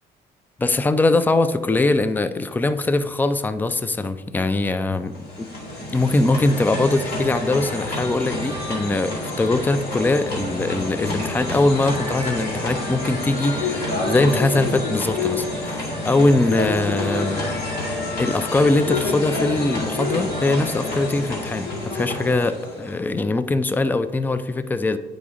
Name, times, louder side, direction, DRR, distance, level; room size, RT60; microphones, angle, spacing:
voice 1, 0.6-5.1 5.9-17.4 18.2-25.0, left 2 dB, 10° left, 11 dB, 0.4 m, -22 dB
sound 1, 5.0-23.1, left 2 dB, 65° left, 2.2 m, -28 dB
8.4 x 5.1 x 3.6 m, 1.2 s
cardioid pair, 110°, 17 cm